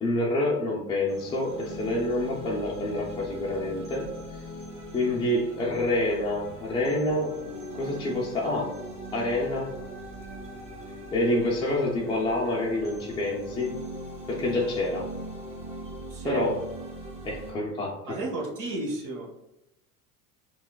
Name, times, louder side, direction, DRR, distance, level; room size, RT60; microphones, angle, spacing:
voice 1, 0.0-4.1 4.9-7.4 7.8-8.8 9.1-9.7 11.1-13.8 14.3-15.1 16.2-16.6 17.2-18.2, left 1 dB, 10° left, -5 dB, 0.4 m, -27 dB
sound 1, 1.1-17.5, equal, 15° right, 1.3 m, -40 dB
voice 2, 16.1-16.5 18.1-19.3, right 2 dB, 40° right, 0 dB, 1.2 m, -32 dB
5.5 x 2.3 x 2.3 m, 0.89 s
hypercardioid pair, 90°, 47 cm